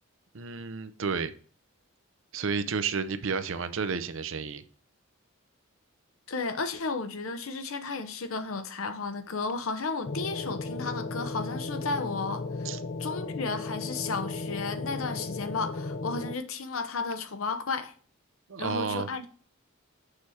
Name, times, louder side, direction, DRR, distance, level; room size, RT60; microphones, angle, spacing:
voice 1, 0.3-1.3 2.3-4.6 12.6-12.8 18.5-19.1, right 5 dB, 65° right, 0.6 m, -31 dB
voice 2, 6.3-12.7 13.0-17.9 18.6-19.3, left 4 dB, 70° left, 0.8 m, -33 dB
sound 1, 10.0-16.3, left 3 dB, 40° left, 0.5 m, -35 dB
6.7 x 4.9 x 4.2 m
head